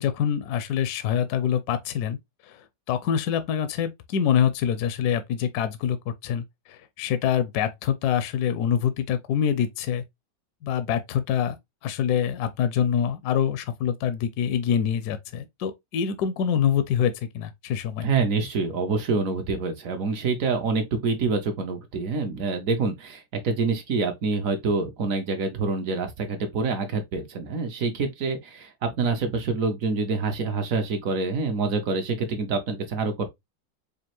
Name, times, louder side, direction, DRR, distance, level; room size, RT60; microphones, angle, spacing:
voice 1, 0.0-2.2 2.4-10.0 10.6-11.6 11.8-18.1, left 8 dB, 70° left, 1.0 m, -25 dB
voice 2, 18.0-33.3, right 4 dB, 60° right, 1.0 m, -26 dB
5.2 x 2.4 x 2.9 m
omnidirectional pair, 1.9 m